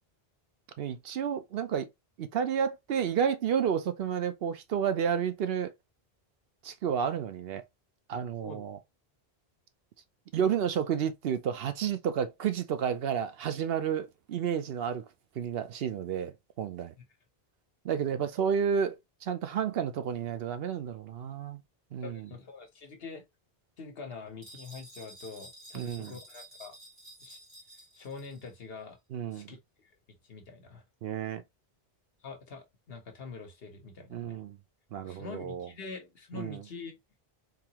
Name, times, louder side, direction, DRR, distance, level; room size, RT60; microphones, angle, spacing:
voice 1, 0.8-1.9 2.2-5.7 6.6-7.6 8.1-8.8 10.3-15.0 15.4-16.9 17.8-19.0 19.2-21.6 21.9-22.3 25.7-26.1 29.1-29.5 31.0-31.4 34.1-34.6 34.9-35.7 36.3-36.6, right 8 dB, 70° right, 0.8 m, -31 dB
voice 2, 22.0-23.2 23.8-26.8 27.2-27.4 28.0-29.0 29.3-30.8 32.2-34.4 35.0-37.0, left 4 dB, 70° left, 1.2 m, -45 dB
sound 1, 24.4-28.6, right 1 dB, 40° right, 1.5 m, -51 dB
3.9 x 2.8 x 2.9 m
omnidirectional pair, 1.1 m